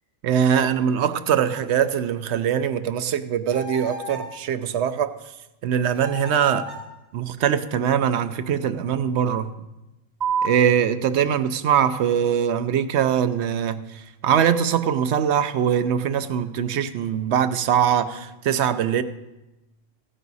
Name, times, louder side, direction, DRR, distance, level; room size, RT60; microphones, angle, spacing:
voice 1, 0.2-5.1 5.6-6.7 7.1-9.5 10.4-19.0, right 8 dB, 65° right, 0.9 m, -22 dB
sound 1, 3.5-4.3 5.9-6.9, left 1 dB, 90° right, 3.5 m, -36 dB
sound 2, 10.2-17.2, right 6 dB, 40° right, 0.9 m, -36 dB
16.0 x 9.4 x 4.1 m
omnidirectional pair, 1.3 m